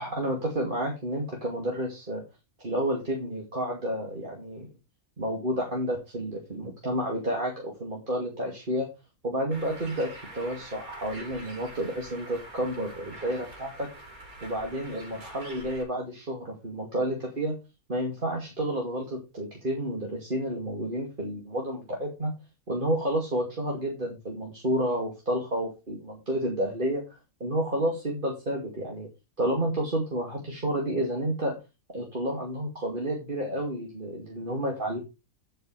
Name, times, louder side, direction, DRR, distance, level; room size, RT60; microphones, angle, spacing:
voice 1, 0.0-2.2 2.6-4.7 5.2-8.9 9.2-13.9 14.4-17.6 17.9-22.3 22.7-27.0 27.4-29.1 29.4-31.5 31.9-35.0, right 1 dB, 35° right, -1 dB, 2.7 m, -30 dB
Bird, 9.5-15.8, right 1 dB, 70° right, 3.8 m, -45 dB
11.5 x 5.9 x 5.0 m, 0.27 s
omnidirectional pair, 1.5 m